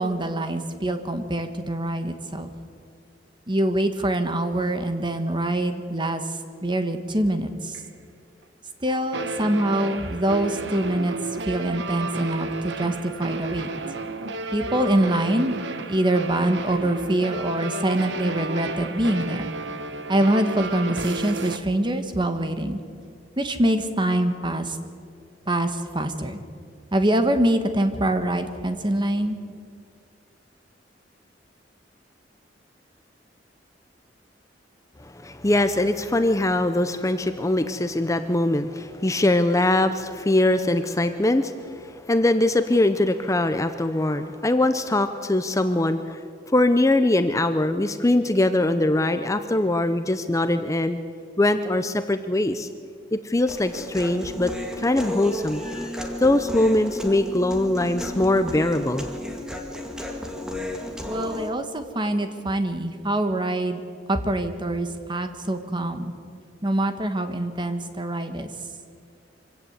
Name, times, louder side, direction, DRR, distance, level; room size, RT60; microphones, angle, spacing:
voice 1, 0.0-2.5 3.5-6.2 6.6-7.8 8.8-11.1 11.4-13.7 14.5-15.6 15.9-19.5 20.1-22.8 23.4-24.8 25.4-26.4 26.9-29.4 61.0-63.8 64.1-66.1 66.6-68.5, right 1 dB, 25° right, 8 dB, 1.5 m, -24 dB
sound 1, 7.7-7.8 9.1-21.6, right 3 dB, 70° right, 1.3 m, -32 dB
voice 2, 35.0-46.2 46.5-51.0 51.4-52.7 53.1-54.5 54.8-55.9 56.2-59.1, left 1 dB, 15° left, 9 dB, 0.7 m, -22 dB
Human voice, 53.5-61.5, equal, 5° right, 2.2 m, -33 dB
25.0 x 16.5 x 8.2 m, 2.2 s
head